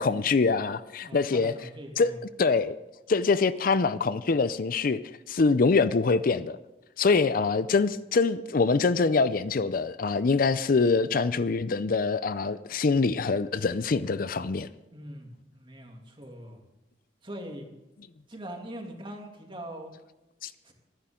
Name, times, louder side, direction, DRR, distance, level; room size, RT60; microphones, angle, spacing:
voice 1, 0.0-1.5 2.0-2.1 2.4-2.7 3.1-5.0 5.3-6.6 7.0-14.7 20.4-20.5, left 4 dB, 50° left, 0.5 m, -24 dB
voice 2, 1.1-2.2 14.9-16.6 17.2-17.7 18.3-19.9 20.6-20.7, right 1 dB, 30° right, 2.6 m, -42 dB
24.5 x 10.0 x 3.8 m
head